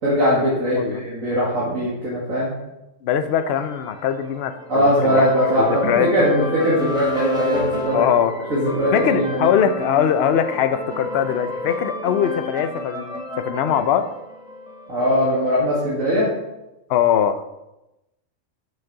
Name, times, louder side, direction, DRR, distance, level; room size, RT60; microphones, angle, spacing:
voice 1, 0.0-2.5 4.7-8.0 8.5-9.5 14.9-16.3, equal, 70° right, -8 dB, 2.7 m, -20 dB
voice 2, 3.0-5.3 5.6-6.1 7.9-8.4 8.9-14.1 16.9-17.4, left 9 dB, 60° left, 10 dB, 0.8 m, -21 dB
sound 1, 3.4-15.2, left 2 dB, 5° right, 1.3 m, -30 dB
7.3 x 6.4 x 5.8 m, 0.96 s
omnidirectional pair, 1.4 m